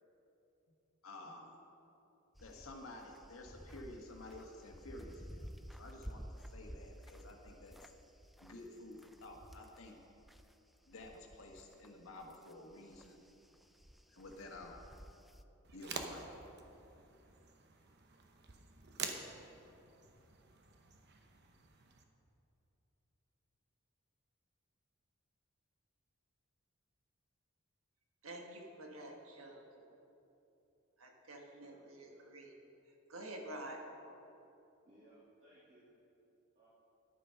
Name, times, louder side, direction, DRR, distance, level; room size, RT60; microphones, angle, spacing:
voice 1, 1.0-1.6 2.4-7.8 8.4-10.0 10.9-13.2 14.1-14.8 15.7-16.3, left 2 dB, 75° left, 1 dB, 1.4 m, -52 dB
sound 1, 2.3-10.5 10.9-15.4, equal, ahead, 0.3 m, -54 dB
sound 2, 15.6-22.0, right 5 dB, 55° right, 0.9 m, -48 dB
voice 2, 28.2-29.9 31.0-32.5 33.1-33.8, right 1 dB, 75° right, 2 dB, 1.5 m, -49 dB
voice 3, 31.6-32.3 34.8-35.9 36.6-36.7, right 1 dB, 35° right, -8 dB, 1.8 m, -63 dB
11.0 x 8.9 x 5.7 m, 2.9 s
head